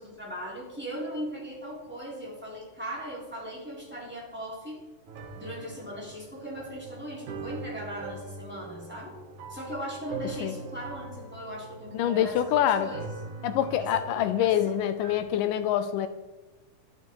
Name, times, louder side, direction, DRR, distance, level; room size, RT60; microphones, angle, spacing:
voice 1, 0.0-4.8 5.4-9.1 9.5-13.1 13.8-14.8, equal, 5° right, -4 dB, 3.5 m, -38 dB
sound 1, 5.1-15.2, right 4 dB, 70° right, 2.7 m, -42 dB
voice 2, 12.0-12.9 13.4-16.1, left 10 dB, 85° left, 11 dB, 2.2 m, -25 dB
12.0 x 11.5 x 4.6 m, 1.1 s
omnidirectional pair, 3.8 m